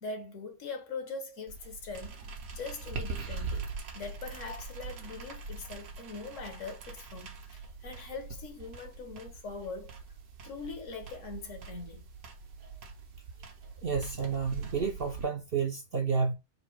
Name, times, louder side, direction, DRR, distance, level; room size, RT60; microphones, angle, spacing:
voice 1, 0.0-2.2 2.5-3.7 3.9-10.0 10.4-12.0, left 4 dB, 60° left, 1.3 m, -42 dB
sound 1, 1.5-15.2, right 4 dB, 75° right, 1.3 m, -42 dB
voice 2, 13.8-16.3, right 5 dB, 55° right, 0.7 m, -30 dB
4.1 x 2.7 x 4.5 m
omnidirectional pair, 1.5 m